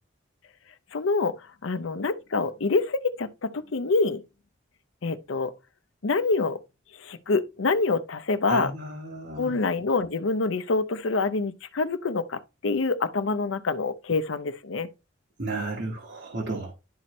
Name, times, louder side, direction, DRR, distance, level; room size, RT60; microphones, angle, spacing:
voice 1, 0.9-1.3 1.6-4.2 5.0-5.5 6.0-6.6 7.0-8.7 9.4-14.9, left 3 dB, 75° left, 0.6 m, -26 dB
voice 2, 8.5-9.5 15.4-16.7, right 2 dB, 55° right, 1.4 m, -32 dB
11.0 x 4.3 x 3.1 m
head